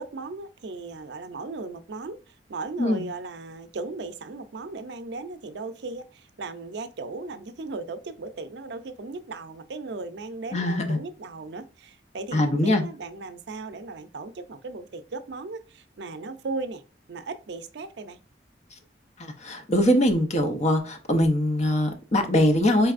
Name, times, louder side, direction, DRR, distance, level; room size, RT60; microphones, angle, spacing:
voice 1, 0.0-16.8 17.1-18.2, right 3 dB, 70° right, 0.5 m, -37 dB
voice 2, 10.5-11.0 12.3-12.8 19.2-22.9, left 1 dB, 40° left, 0.7 m, -22 dB
4.6 x 3.3 x 2.4 m
head